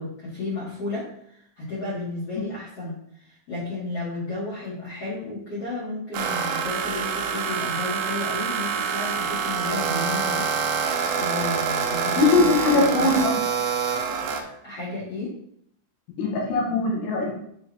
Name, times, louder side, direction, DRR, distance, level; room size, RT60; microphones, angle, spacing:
voice 1, 0.0-10.6 11.1-13.1 14.4-15.3, left 2 dB, 45° left, -10 dB, 2.3 m, -33 dB
sound 1, 6.1-14.4, right 6 dB, 80° right, 2.6 m, -26 dB
voice 2, 12.2-13.3 16.2-17.3, left 3 dB, 80° left, -2 dB, 3.6 m, -21 dB
9.8 x 3.7 x 3.4 m, 0.71 s
omnidirectional pair, 5.6 m